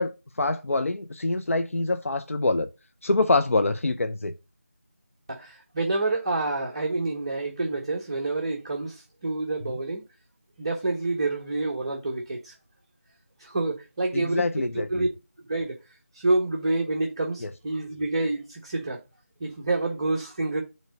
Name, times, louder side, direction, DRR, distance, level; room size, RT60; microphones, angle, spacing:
voice 1, 0.0-2.7 3.0-4.3 9.7-9.8 14.1-15.1 17.4-17.5, left 2 dB, 65° left, 0.6 m, -25 dB
voice 2, 5.3-10.0 10.6-12.5 13.4-14.5 14.9-15.1 15.4-15.7 16.1-19.0 19.4-20.6, right 2 dB, 25° right, 1.1 m, -28 dB
5.1 x 3.8 x 5.3 m
figure-of-eight pair, 170°, 8 cm